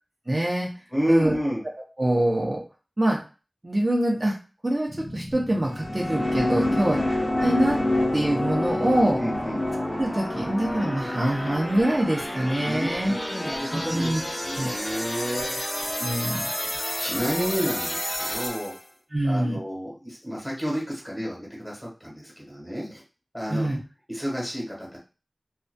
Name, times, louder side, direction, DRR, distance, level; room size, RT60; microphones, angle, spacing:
voice 1, 0.3-0.7 1.1-1.4 2.0-2.6 3.0-3.2 3.6-4.4 4.6-7.0 7.4-7.8 8.1-9.2 10.0-13.1 13.7-14.2 14.6-14.7 16.0-16.5 19.1-19.6 23.5-23.8, right 1 dB, 40° right, -2 dB, 0.6 m, -24 dB
voice 2, 0.9-1.6 6.6-7.1 9.2-9.6 12.6-16.1 17.0-18.7 19.2-23.0 23.3-23.7 24.1-25.0, equal, 10° left, -4 dB, 1.4 m, -30 dB
sound 1, 4.9-18.9, left 1 dB, 30° left, 0.7 m, -32 dB
sound 2, 5.6-14.3, left 1 dB, 75° left, 1.0 m, -29 dB
2.6 x 2.3 x 2.2 m, 0.33 s
wide cardioid pair, 50°, 0 cm